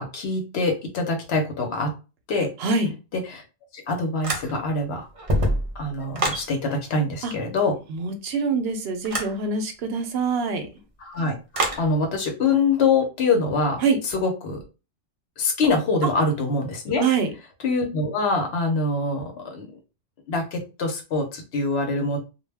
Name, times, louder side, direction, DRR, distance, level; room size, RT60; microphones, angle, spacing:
voice 1, 0.0-1.9 2.3-2.5 3.1-3.4 3.7-5.1 5.7-7.8 11.0-14.6 15.4-17.0 17.6-19.7 20.3-22.2, left 3 dB, 80° left, 4 dB, 1.0 m, -24 dB
voice 2, 2.6-2.9 7.2-7.3 7.9-10.7 13.8-14.0 16.0-16.1 17.0-17.3, right 4 dB, 75° right, 6 dB, 0.8 m, -24 dB
sound 1, 4.2-4.8 5.1-6.5 9.0-9.4 11.5-11.9, right 1 dB, 40° right, 0.6 m, -25 dB
2.2 x 2.2 x 3.3 m, 0.31 s
omnidirectional pair, 1.1 m